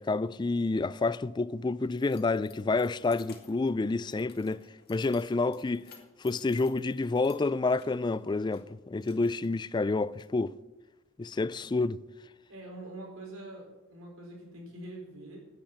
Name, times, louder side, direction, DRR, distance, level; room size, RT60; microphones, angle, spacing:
voice 1, 0.0-5.9 6.2-10.6 11.2-12.0, left 3 dB, 20° left, 0.3 m, -29 dB
Keys jangling, 1.3-10.2, left 7 dB, 50° left, 1.9 m, -58 dB
voice 2, 12.5-15.4, right 1 dB, 90° right, 4.6 m, -44 dB
10.0 x 8.8 x 8.7 m
head